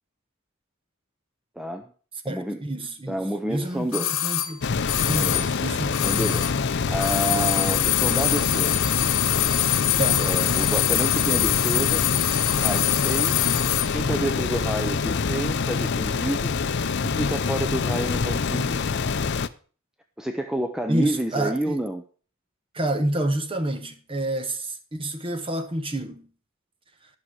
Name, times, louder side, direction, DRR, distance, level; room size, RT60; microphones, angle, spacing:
voice 1, 1.6-1.9 2.2-2.6 3.1-4.2 5.1-5.3 6.0-8.8 10.2-12.0 12.6-13.5 13.9-16.5 17.0-18.8 20.2-22.0, right 1 dB, 5° right, 0.6 m, -29 dB
voice 2, 2.2-3.2 3.5-4.7 5.1-6.1 6.8-6.9 10.0-10.2 20.9-21.8 22.7-26.2, right 1 dB, 25° right, 1.3 m, -28 dB
sound 1, 3.9-6.7 6.9-14.0 14.2-14.3, left 13 dB, 80° left, 1.1 m, -24 dB
sound 2, 4.6-19.5, left 5 dB, 55° left, 0.5 m, -26 dB
11.5 x 6.4 x 6.2 m
head